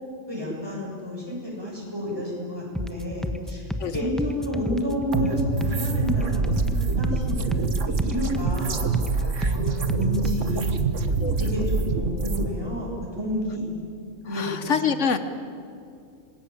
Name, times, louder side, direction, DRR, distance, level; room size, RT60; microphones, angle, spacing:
voice 1, 0.3-10.7 11.4-13.7 14.3-14.7, left 1 dB, 20° right, -3 dB, 7.7 m, -31 dB
sound 1, 2.7-10.4, equal, ahead, 1.0 m, -32 dB
sound 2, 5.1-12.5, right 4 dB, 80° right, 1.8 m, -25 dB
voice 2, 14.3-15.2, left 6 dB, 75° left, 10 dB, 1.4 m, -25 dB
27.0 x 21.0 x 9.0 m, 2.5 s
omnidirectional pair, 1.3 m